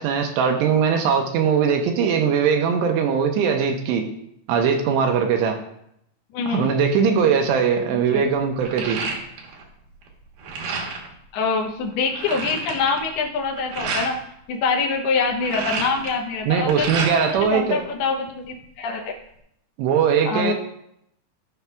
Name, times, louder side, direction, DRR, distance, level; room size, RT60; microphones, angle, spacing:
voice 1, 0.0-4.1 4.5-5.6 6.5-9.0 16.5-17.8 19.8-20.5, right 6 dB, 85° right, 3 dB, 2.8 m, -20 dB
voice 2, 6.3-6.7 8.1-8.2 11.3-14.2 14.5-19.1 20.3-20.5, left 4 dB, 75° left, 2 dB, 2.6 m, -25 dB
sound 1, 7.2-7.5 7.9-9.7 10.0-11.1 11.6-11.7 11.9-14.1 15.2-17.4 17.8-18.6, right 4 dB, 65° right, 2.4 m, -30 dB
16.0 x 5.5 x 2.3 m, 0.75 s
omnidirectional pair, 5.1 m